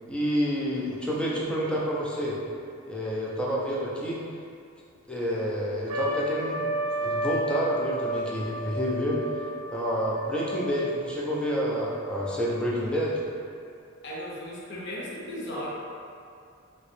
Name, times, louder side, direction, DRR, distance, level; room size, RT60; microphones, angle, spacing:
voice 1, 0.1-2.4 2.9-4.2 5.1-6.7 7.0-9.2 9.7-13.2, equal, 5° left, -6 dB, 0.5 m, -28 dB
Trumpet, 5.9-10.9, right 1 dB, 80° right, 0.4 m, -31 dB
voice 2, 14.0-15.7, left 1 dB, 60° left, -5 dB, 0.6 m, -36 dB
3.0 x 2.9 x 3.1 m, 2.3 s
head